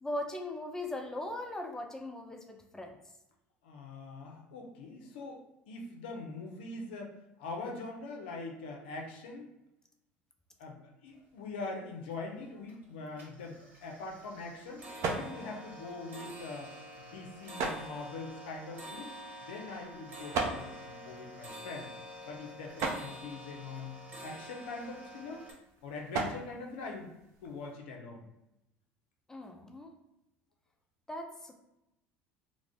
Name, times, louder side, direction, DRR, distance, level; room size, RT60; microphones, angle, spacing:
voice 1, 0.0-3.0 29.3-29.9 31.1-31.5, left 1 dB, 10° left, 3 dB, 0.4 m, -39 dB
voice 2, 3.6-9.5 10.6-14.9 15.1-16.7 17.1-19.1 19.5-21.9 22.3-23.9 24.2-25.4 25.8-27.1 27.4-28.3, left 3 dB, 80° left, 1 dB, 0.5 m, -43 dB
sound 1, 11.2-11.3 11.5-12.1 12.5-12.9 13.1-25.5, equal, 30° right, 1.1 m, -48 dB
sound 2, 13.4-27.7, right 4 dB, 60° right, 0.5 m, -41 dB
2.4 x 2.0 x 3.4 m, 0.90 s
hypercardioid pair, 75°, 6 cm